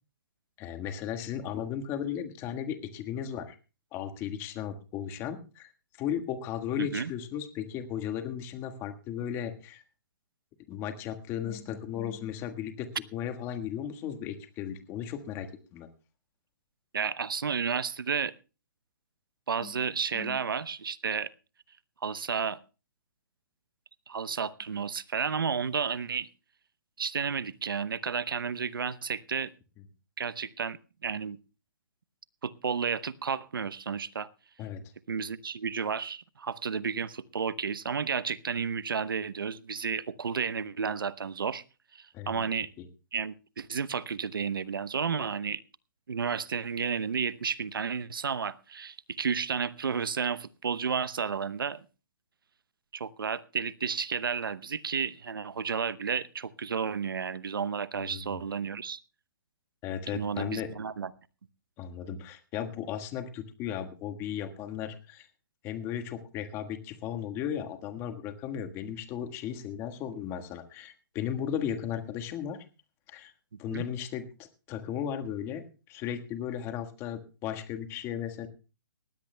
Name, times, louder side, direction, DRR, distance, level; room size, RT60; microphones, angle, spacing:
voice 1, 0.6-3.6 3.9-5.7 6.0-9.8 10.7-15.9 19.6-19.8 20.1-20.4 34.6-34.8 42.1-42.4 42.8-42.9 57.9-58.4 59.8-60.7 61.8-65.3 65.6-72.6 73.1-73.3 73.6-74.3 74.7-75.6 75.9-78.5, left 9 dB, 20° left, 8 dB, 1.5 m, -35 dB
voice 2, 6.8-7.1 16.9-18.3 19.5-21.3 22.0-22.6 24.1-26.3 27.0-29.5 30.2-31.4 32.4-34.3 35.1-41.6 41.9-42.7 43.1-45.6 46.1-51.8 52.9-59.0 60.1-61.1 73.7-73.8, right 6 dB, 85° right, 17 dB, 0.9 m, -32 dB
19.0 x 16.0 x 2.2 m, 0.33 s
hypercardioid pair, 150°, 11 cm